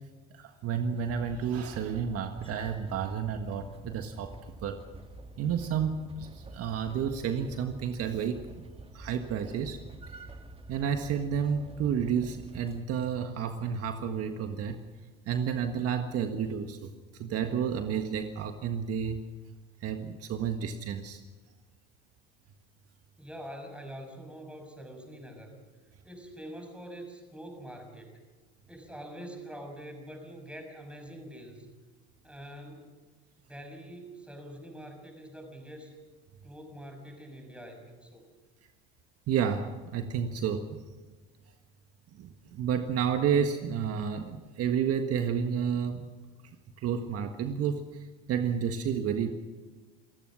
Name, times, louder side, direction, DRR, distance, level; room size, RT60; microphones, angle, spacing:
voice 1, 0.3-4.3 4.6-4.8 5.4-8.4 8.9-9.8 10.1-10.2 10.7-14.8 15.3-19.2 19.8-21.2 39.3-40.8 42.2-46.1 46.8-49.3, right 7 dB, 55° right, 6 dB, 1.6 m, -31 dB
sound 1, 1.0-12.8, right 2 dB, 20° right, 1.9 m, -48 dB
voice 2, 23.2-25.5 26.0-28.2 28.7-31.7 32.2-33.0 33.5-35.9 36.4-38.2, equal, 5° right, 4 dB, 6.0 m, -45 dB
29.0 x 16.0 x 6.3 m, 1.3 s
supercardioid pair, 100°, 30 cm